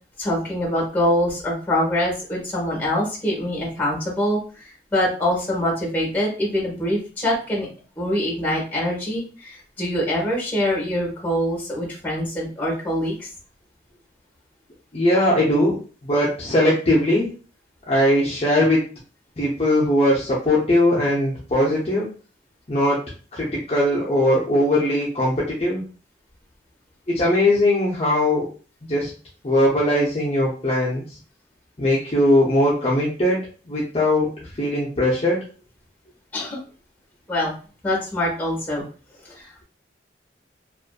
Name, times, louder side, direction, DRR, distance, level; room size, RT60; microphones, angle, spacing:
voice 1, 0.2-7.7 8.0-13.3 36.3-36.6 37.3-37.5 37.8-38.8 39.2-39.6, left 1 dB, 10° left, -2 dB, 1.0 m, -24 dB
voice 2, 14.9-17.3 17.9-18.8 19.4-22.1 22.7-23.0 23.3-25.8 27.1-28.5 28.9-29.1 29.4-31.0 31.8-35.4, left 1 dB, 35° left, -6 dB, 0.5 m, -20 dB
2.5 x 2.4 x 2.2 m, 0.37 s
head